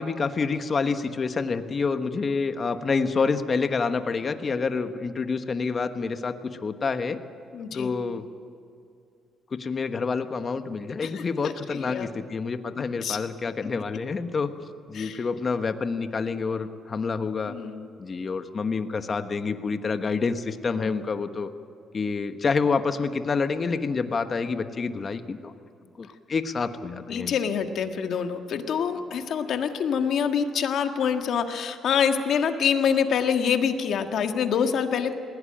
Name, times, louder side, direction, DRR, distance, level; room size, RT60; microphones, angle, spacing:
voice 1, 0.0-7.2 7.7-8.3 9.5-14.5 14.9-17.5 18.0-21.5 21.9-25.5 26.0-27.3, left 4 dB, 40° left, 9 dB, 1.3 m, -28 dB
voice 2, 7.5-7.9 11.0-12.1 13.0-13.2 14.9-15.2 17.5-17.9 20.7-20.9 27.1-35.1, left 7 dB, 70° left, 6 dB, 1.6 m, -26 dB
20.5 x 17.0 x 8.9 m, 2.5 s
cardioid pair, 90°, 0 cm